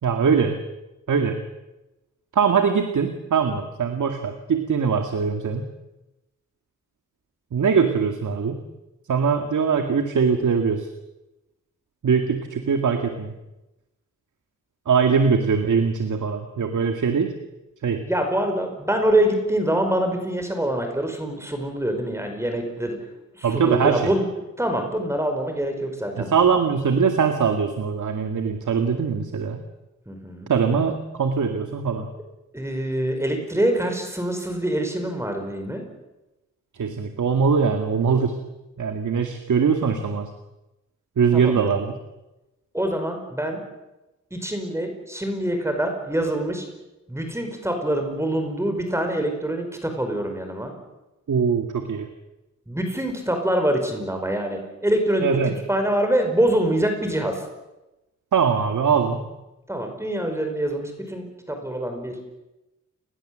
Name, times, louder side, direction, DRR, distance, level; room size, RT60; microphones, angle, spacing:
voice 1, 0.0-0.6 1.1-1.4 2.3-5.6 7.5-8.6 9.1-10.9 12.0-13.3 14.9-17.3 17.8-18.0 23.4-24.1 26.2-29.6 30.5-32.1 36.8-38.4 38.8-40.3 41.2-42.0 51.3-52.1 55.2-55.5 58.3-59.2, right 6 dB, 75° right, 6 dB, 2.2 m, -22 dB
voice 2, 18.0-23.0 23.3-24.3 24.6-26.3 30.1-30.5 32.5-35.8 41.3-41.7 42.7-43.6 44.3-46.7 47.1-50.7 52.7-57.4 59.7-62.1, right 1 dB, 10° right, 5 dB, 5.1 m, -25 dB
29.0 x 21.5 x 7.8 m, 0.99 s
wide cardioid pair, 145°, 31 cm